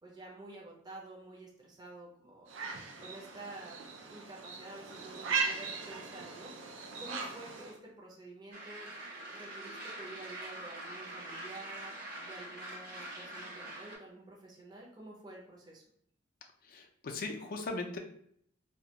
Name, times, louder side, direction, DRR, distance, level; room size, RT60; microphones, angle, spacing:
voice 1, 0.0-2.5 3.0-3.8 4.1-8.9 9.3-11.9 12.2-15.8, right 2 dB, 20° right, -3 dB, 0.5 m, -50 dB
sound 1, 2.5-7.8, right 5 dB, 80° right, 0.4 m, -38 dB
sound 2, 8.5-14.0, right 1 dB, 50° right, 0.8 m, -44 dB
voice 2, 16.6-18.0, left 3 dB, 45° left, 4 dB, 0.4 m, -38 dB
2.3 x 2.1 x 2.7 m, 0.66 s
head